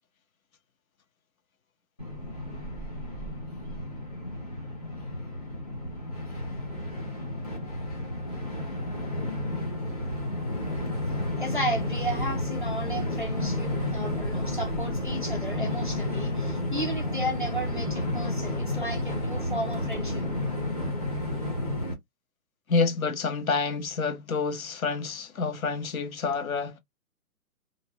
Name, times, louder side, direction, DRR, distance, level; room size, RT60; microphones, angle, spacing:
Train, 2.0-21.9, left 1 dB, 25° left, 0.6 m, -31 dB
voice 1, 11.2-20.3, right 1 dB, 35° right, 0.4 m, -34 dB
voice 2, 22.7-26.8, left 4 dB, 60° left, 0.8 m, -28 dB
2.6 x 2.0 x 2.7 m
hypercardioid pair, 170°, 47 cm